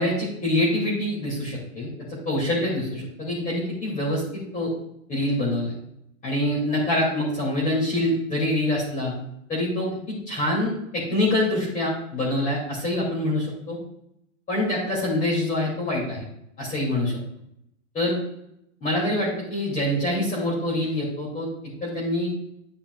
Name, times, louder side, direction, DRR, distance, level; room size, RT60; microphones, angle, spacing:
voice 1, 0.0-4.7 5.1-5.7 6.2-9.1 9.5-13.8 14.5-16.2 16.6-17.2 17.9-18.2 18.8-21.5 21.8-22.3, left 1 dB, 20° left, -5 dB, 2.4 m, -25 dB
11.0 x 5.5 x 2.3 m, 0.76 s
hypercardioid pair, 150°, 40 cm